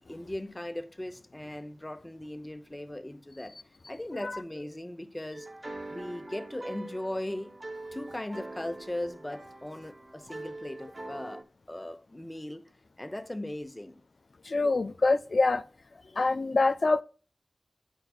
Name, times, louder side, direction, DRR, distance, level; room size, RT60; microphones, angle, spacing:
voice 1, 0.1-3.6 3.9-5.5 5.9-7.5 7.9-12.7 13.0-14.0, left 1 dB, 20° left, 0.6 m, -38 dB
sound 1, 5.3-11.4, right 2 dB, 40° right, 1.0 m, -43 dB
voice 2, 14.4-15.6 16.2-17.0, left 3 dB, 65° left, 0.3 m, -25 dB
10.5 x 4.5 x 2.4 m
wide cardioid pair, 60°, 0 cm